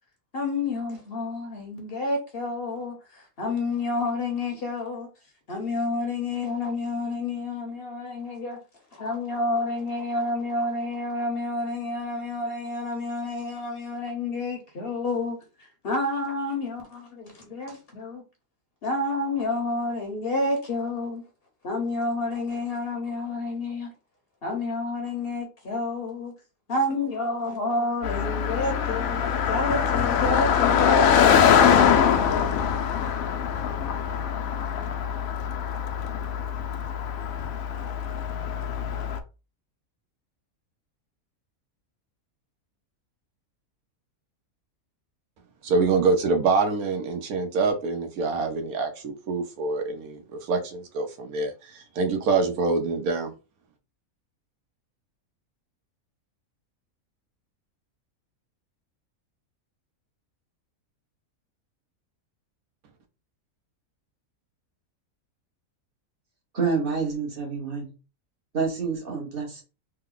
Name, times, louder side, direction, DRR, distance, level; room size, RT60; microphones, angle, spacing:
voice 1, 0.3-5.1 5.5-8.6 8.9-18.2 18.8-21.2 21.6-23.9 24.4-26.3 26.7-32.0, left 2 dB, 50° left, 0.9 m, -29 dB
Car passing by, 28.0-39.2, left 8 dB, 75° left, 1.0 m, -23 dB
voice 2, 45.6-53.3, right 4 dB, 80° right, 1.2 m, -25 dB
voice 3, 66.5-67.9 68.5-69.6, right 5 dB, 40° right, 1.1 m, -28 dB
3.4 x 2.1 x 3.7 m
omnidirectional pair, 1.5 m